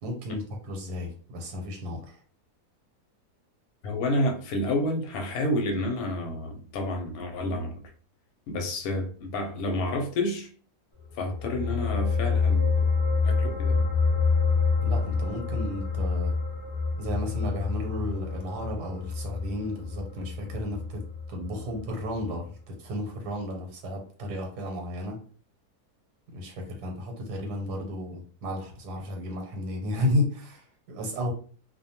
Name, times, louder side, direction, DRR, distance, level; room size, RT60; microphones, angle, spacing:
voice 1, 0.0-2.2 14.8-16.4 17.0-25.2 26.3-31.3, left 1 dB, 80° right, 1.3 m, -33 dB
voice 2, 3.8-7.8 8.5-10.5 11.1-12.9 13.2-13.9, left 1 dB, 70° left, 1.0 m, -29 dB
sound 1, 11.1-21.9 22.2-22.3, left 4 dB, 25° left, 0.6 m, -27 dB
2.6 x 2.1 x 2.8 m
omnidirectional pair, 1.7 m